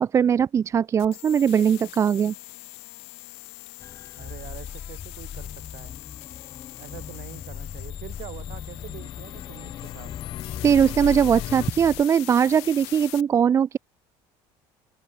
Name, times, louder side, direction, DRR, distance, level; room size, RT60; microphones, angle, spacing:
voice 1, 0.0-2.3 10.6-13.8, right 8 dB, 30° right, 0.5 m, -20 dB
sound 1, 1.0-13.2, left 32 dB, 80° left, 1.5 m, -42 dB
sound 2, 3.8-12.0, left 8 dB, 35° left, 1.7 m, -38 dB
voice 2, 4.2-6.0 6.8-10.1, right 19 dB, 65° right, 6.7 m, -44 dB
sound 3, 7.0-11.7, left 13 dB, 50° left, 1.7 m, -39 dB
cardioid pair, 130°, 11 cm